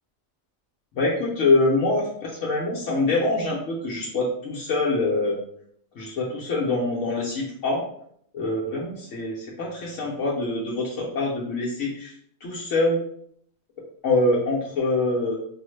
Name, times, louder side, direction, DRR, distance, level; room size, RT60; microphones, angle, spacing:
voice 1, 1.0-5.4 6.0-7.8 8.3-12.1 12.4-13.0 14.0-15.3, left 2 dB, 70° left, -5 dB, 1.1 m, -24 dB
4.9 x 2.0 x 3.1 m, 0.67 s
omnidirectional pair, 1.4 m